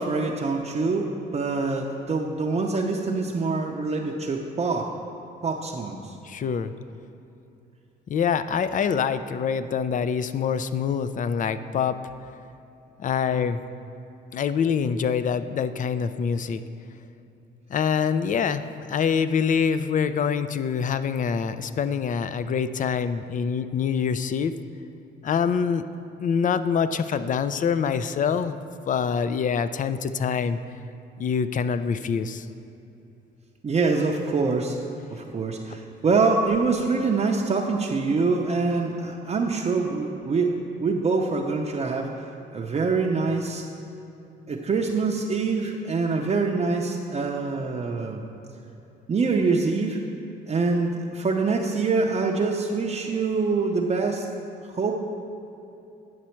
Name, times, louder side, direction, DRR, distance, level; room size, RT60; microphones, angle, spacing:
voice 1, 0.0-4.9 5.4-6.2 33.6-34.8 35.1-42.1 42.5-43.6 44.5-48.2 49.1-50.0 50.5-54.3 54.7-55.0, right 4 dB, 30° right, 0 dB, 0.6 m, -25 dB
voice 2, 6.2-6.7 8.1-12.0 13.0-13.6 14.3-16.6 17.7-18.6 18.9-24.5 25.2-25.9 26.2-28.6 28.9-30.6 31.2-32.5 35.7-35.8, left 6 dB, 40° left, 12 dB, 0.4 m, -25 dB
9.4 x 6.2 x 4.4 m, 2.9 s
cardioid pair, 90°, 20 cm